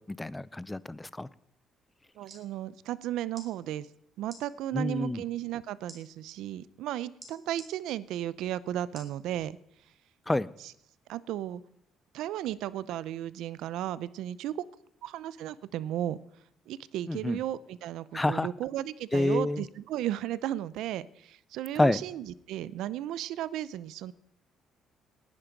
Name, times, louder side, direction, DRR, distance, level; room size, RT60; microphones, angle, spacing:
voice 1, 0.1-1.3 4.7-5.2 10.3-10.5 17.1-17.4 18.1-18.5 19.1-19.6 21.8-22.0, left 2 dB, 10° left, 19 dB, 0.5 m, -28 dB
sound 1, 2.0-2.5 3.3-3.5 4.2-4.4 5.9-6.0 7.2-7.7 8.9-9.2 9.7-9.8, right 2 dB, 20° right, 3.9 m, -48 dB
voice 2, 2.2-3.9 4.2-9.6 10.6-10.7 11.1-11.6 12.1-14.6 15.0-16.2 16.7-24.1, right 12 dB, 85° right, 19 dB, 0.6 m, -35 dB
19.0 x 10.5 x 5.2 m, 0.74 s
cardioid pair, 130°, 0 cm